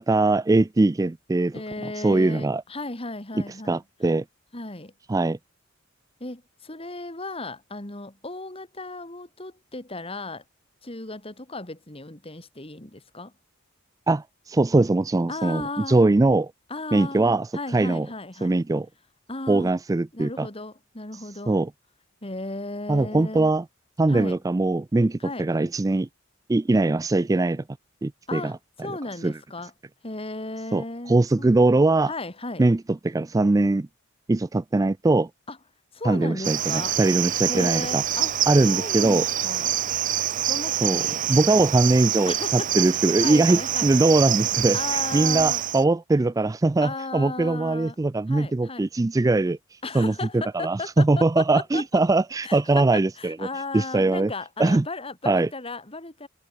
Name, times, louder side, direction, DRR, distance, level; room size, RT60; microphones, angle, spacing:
voice 1, 0.0-1.5 2.0-2.6 3.7-4.2 5.1-5.4 14.1-16.5 16.9-18.1 18.4-18.9 19.5-20.5 21.5-21.7 22.9-23.6 24.0-26.1 26.5-27.6 28.0-28.5 29.2-29.3 30.7-32.1 32.6-33.9 34.3-35.3 36.0-38.0 38.5-39.2 40.8-41.0 41.3-53.5 53.7-54.3 54.6-54.9 55.3-55.5, right 2 dB, 15° right, 0.3 m, -21 dB
voice 2, 1.5-3.8 4.5-4.9 6.2-10.4 10.8-13.3 15.3-16.0 16.7-18.5 19.3-19.7 20.1-21.6 22.2-23.5 24.1-24.4 25.2-25.5 28.3-28.5 28.8-29.7 30.0-31.6 32.1-32.7 35.5-35.6 35.9-37.0 37.5-38.3 38.6-39.7 40.5-41.2 42.3-42.7 43.2-43.9 44.7-45.6 46.8-48.0 48.3-48.9 49.8-51.8 52.4-56.3, left 2 dB, 30° left, 2.6 m, -35 dB
Cricket, 36.4-45.8, right 11 dB, 40° right, 0.8 m, -26 dB
head